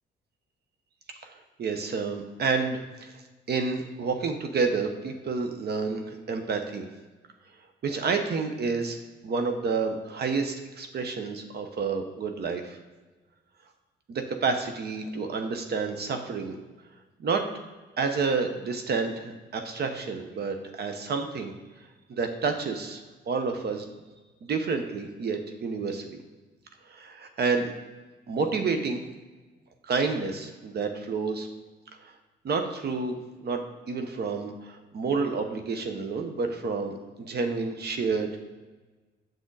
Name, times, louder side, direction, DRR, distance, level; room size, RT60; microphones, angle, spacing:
voice 1, 1.6-3.1 3.5-6.9 7.8-9.0 9.2-12.8 14.1-16.6 17.2-17.4 18.0-21.5 22.1-23.0 23.3-23.8 24.4-26.1 26.9-27.7 28.3-29.0 29.9-31.5 32.0-32.1 32.4-33.6 33.9-38.3, right 4 dB, 55° right, 6 dB, 0.9 m, -29 dB
6.6 x 6.3 x 4.0 m, 1.2 s
cardioid pair, 90°, 20 cm